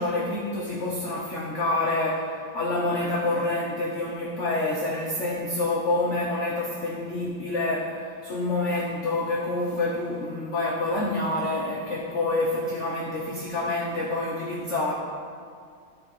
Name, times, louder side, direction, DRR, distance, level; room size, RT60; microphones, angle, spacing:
voice 1, 0.0-14.9, left 2 dB, 80° left, -3 dB, 0.6 m, -27 dB
12.5 x 4.6 x 3.1 m, 2.2 s
omnidirectional pair, 2.3 m